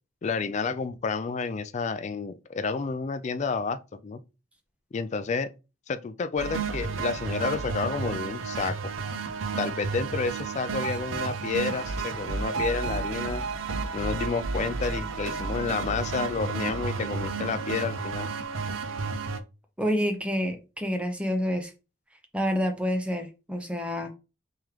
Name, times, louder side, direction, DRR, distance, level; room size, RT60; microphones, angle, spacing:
voice 1, 0.2-4.2 4.9-5.5 5.9-8.8 9.6-13.4 13.9-18.3, left 4 dB, 35° left, 0.3 m, -30 dB
sound 1, 6.4-19.4, right 4 dB, 75° right, 0.5 m, -32 dB
voice 2, 19.8-21.7 22.3-24.1, equal, 5° right, 0.6 m, -28 dB
3.6 x 3.1 x 3.1 m
head